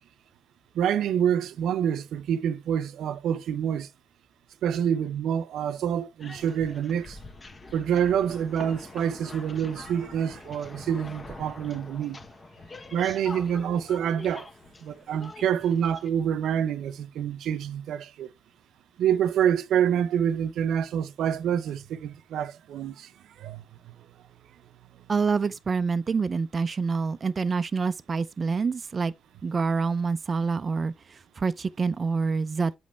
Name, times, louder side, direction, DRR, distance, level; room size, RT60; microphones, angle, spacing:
voice 1, 0.7-3.9 4.6-7.2 7.7-12.2 12.9-14.5 14.8-18.3 19.0-23.1 23.4-24.0, right 9 dB, 75° right, 0.7 m, -27 dB
sound 1, 6.2-16.1, left 3 dB, 30° left, 1.3 m, -44 dB
voice 2, 25.1-29.1 29.4-32.8, right 4 dB, 35° right, 0.5 m, -27 dB
7.9 x 5.2 x 3.3 m
cardioid pair, 90°, 0 cm